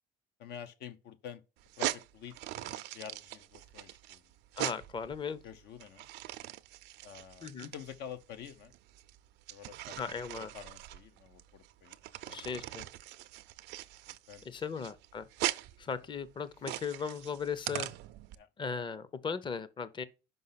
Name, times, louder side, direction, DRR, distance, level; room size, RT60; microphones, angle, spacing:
voice 1, 0.4-1.4 1.8-4.2 5.4-6.1 7.0-8.7 9.5-10.1 10.5-12.0 12.3-12.5 14.1-14.8 18.3-18.5, left 8 dB, 80° left, 0.7 m, -48 dB
sound 1, 1.6-18.3, right 15 dB, 85° right, 0.5 m, -41 dB
voice 2, 4.6-5.4 7.4-7.7 10.0-10.5 12.3-12.9 14.4-15.2 15.8-17.9 18.6-20.0, left 6 dB, 30° left, 0.6 m, -37 dB
5.6 x 5.4 x 5.6 m
cardioid pair, 110°, 17 cm